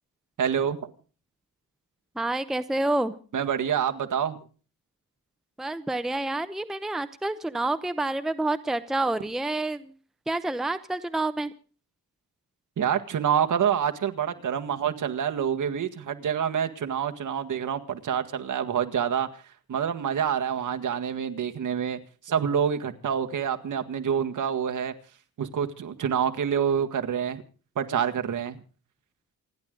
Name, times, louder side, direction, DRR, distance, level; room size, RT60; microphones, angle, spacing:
voice 1, 0.4-0.9 3.3-4.4 12.8-19.4 19.7-22.0 22.2-24.9 25.4-27.4 27.8-28.6, right 8 dB, 55° right, 1.8 m, -27 dB
voice 2, 2.2-3.1 5.6-9.8 10.3-11.5, right 2 dB, ahead, 0.8 m, -28 dB
28.5 x 11.0 x 3.8 m
wide cardioid pair, 140°, 36 cm